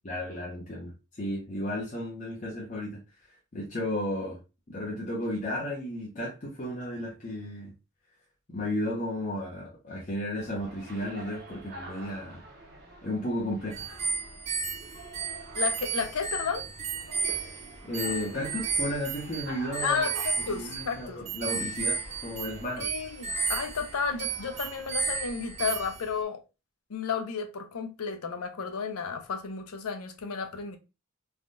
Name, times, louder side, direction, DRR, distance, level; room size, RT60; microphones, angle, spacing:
voice 1, 0.0-0.9 1.2-4.4 4.7-7.7 8.5-12.4 13.0-14.0 17.8-20.0 20.5-22.9, left 1 dB, 35° left, 0.6 m, -34 dB
sound 1, 10.3-25.7, right 2 dB, 50° right, 0.7 m, -47 dB
sound 2, 13.7-26.2, right 4 dB, 30° right, 0.3 m, -33 dB
voice 2, 15.6-16.7 19.8-21.2 22.8-26.4 26.9-30.8, left 5 dB, 85° left, 0.5 m, -32 dB
3.4 x 2.2 x 2.5 m
head